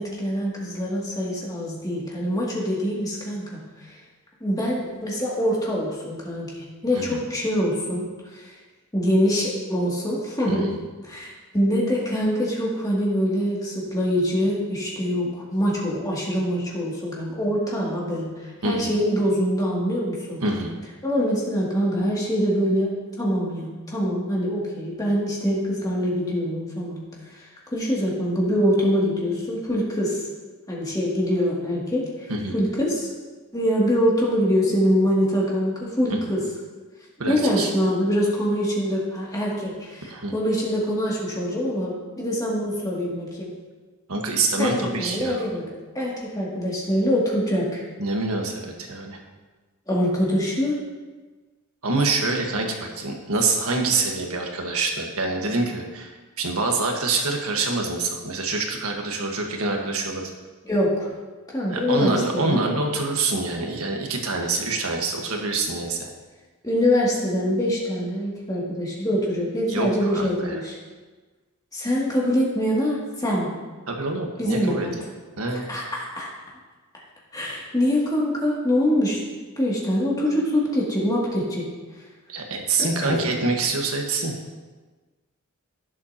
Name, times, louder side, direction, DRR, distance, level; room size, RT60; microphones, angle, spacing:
voice 1, 0.0-4.0 4.4-8.1 8.3-8.5 8.9-10.7 11.0-20.4 21.0-27.0 27.4-30.2 30.7-33.1 33.5-36.4 37.3-43.5 44.6-44.7 45.0-45.6 45.9-47.8 49.9-50.8 60.6-61.1 61.5-62.7 66.6-70.8 71.7-73.5 74.4-74.9 75.7-76.3 77.3-79.2 79.6-81.6 82.8-83.2, equal, 15° left, -5 dB, 2.5 m, -24 dB
voice 2, 20.4-20.7 32.3-32.5 36.1-36.2 37.2-37.7 40.1-40.3 44.1-45.5 48.0-49.2 51.8-60.3 61.7-66.1 69.7-70.6 73.9-74.9 75.4-75.7 82.3-84.3, right 3 dB, 75° right, 2 dB, 1.5 m, -26 dB
16.0 x 7.7 x 2.9 m, 1.3 s
head